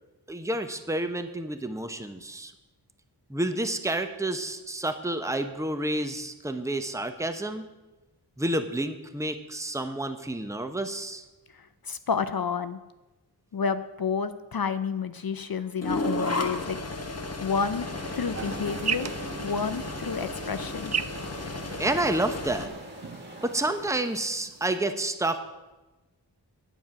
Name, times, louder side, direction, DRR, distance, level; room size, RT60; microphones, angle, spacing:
voice 1, 0.3-2.5 3.3-7.7 8.4-11.2 21.8-22.7 23.4-25.5, right 1 dB, 5° right, 8 dB, 0.8 m, -29 dB
voice 2, 11.5-12.8 13.5-16.8 17.4-17.9 18.1-19.1 19.4-20.9, left 6 dB, 60° left, 12 dB, 0.6 m, -30 dB
sound 1, 15.8-22.7, left 2 dB, 35° left, 1.0 m, -34 dB
sound 2, 17.8-23.8, right 1 dB, 25° right, 2.3 m, -44 dB
sound 3, 18.3-24.8, right 7 dB, 40° right, 0.4 m, -37 dB
9.1 x 9.0 x 5.9 m, 1.1 s
wide cardioid pair, 55°, 42 cm